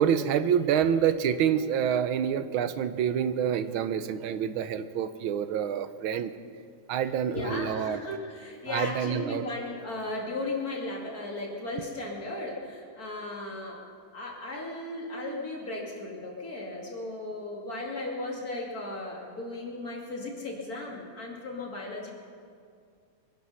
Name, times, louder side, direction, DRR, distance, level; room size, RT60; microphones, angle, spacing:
voice 1, 0.0-6.3 6.9-8.0 8.7-9.4, right 8 dB, 85° right, 11 dB, 1.6 m, -27 dB
voice 2, 7.3-13.8 14.1-22.1, left 2 dB, 45° left, -2 dB, 3.1 m, -36 dB
23.5 x 11.0 x 5.6 m, 2.2 s
omnidirectional pair, 2.2 m